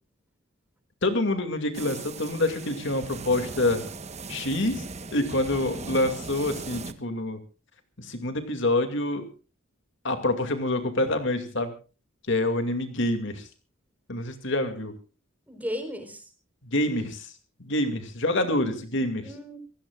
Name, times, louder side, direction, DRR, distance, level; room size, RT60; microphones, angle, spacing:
voice 1, 1.0-3.8 4.3-4.9 5.1-7.4 8.0-9.3 10.0-11.7 12.3-13.4 14.1-14.9 16.7-17.3 17.6-19.3, left 1 dB, 60° left, 7 dB, 2.4 m, -26 dB
sound 1, 1.7-6.9, right 3 dB, 35° right, 1.1 m, -38 dB
voice 2, 15.5-16.2 18.4-18.8 19.2-19.6, equal, 10° right, 6 dB, 4.1 m, -36 dB
27.5 x 16.5 x 2.4 m, 0.35 s
head